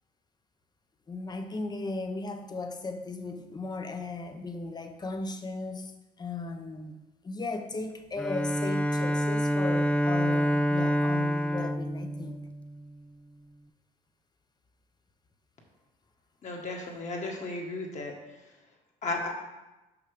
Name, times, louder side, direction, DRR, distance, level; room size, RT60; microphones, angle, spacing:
voice 1, 1.1-5.9 6.2-7.0 7.2-12.4, left 3 dB, 25° left, 7 dB, 0.7 m, -36 dB
Bowed string instrument, 8.2-13.0, equal, 5° left, 0.4 m, -27 dB
voice 2, 16.4-18.1 19.0-19.3, left 2 dB, 45° left, 0 dB, 1.7 m, -34 dB
5.9 x 5.7 x 5.0 m, 1.1 s
cardioid pair, 110°, 17 cm